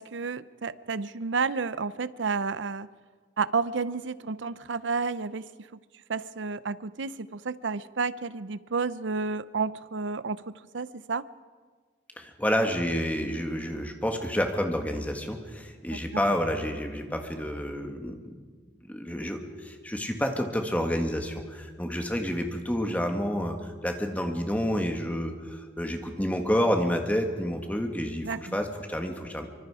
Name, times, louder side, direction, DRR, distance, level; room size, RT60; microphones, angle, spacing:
voice 1, 0.0-2.9 3.4-5.5 6.1-10.4 10.7-11.3 15.9-16.2 28.2-28.6, right 4 dB, 85° right, 17 dB, 0.7 m, -31 dB
voice 2, 12.2-18.2 18.9-29.5, equal, 10° left, 4 dB, 1.8 m, -29 dB
25.0 x 24.5 x 5.0 m, 1.5 s
head